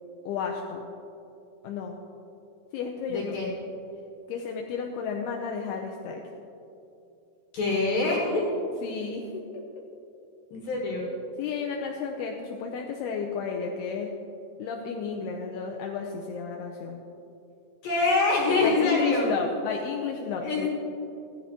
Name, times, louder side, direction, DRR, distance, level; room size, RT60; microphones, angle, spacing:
voice 1, 0.3-0.9 1.6-2.0 2.7-3.4 4.3-6.2 8.8-9.6 10.6-10.7 11.4-14.1 14.6-17.0 18.6-20.7, left 6 dB, 90° left, 1 dB, 2.3 m, -32 dB
voice 2, 3.1-3.5 7.5-8.5 10.5-11.1 17.8-19.3 20.4-20.7, left 3 dB, 65° left, -3 dB, 2.6 m, -25 dB
15.5 x 14.5 x 3.0 m, 2.8 s
omnidirectional pair, 5.3 m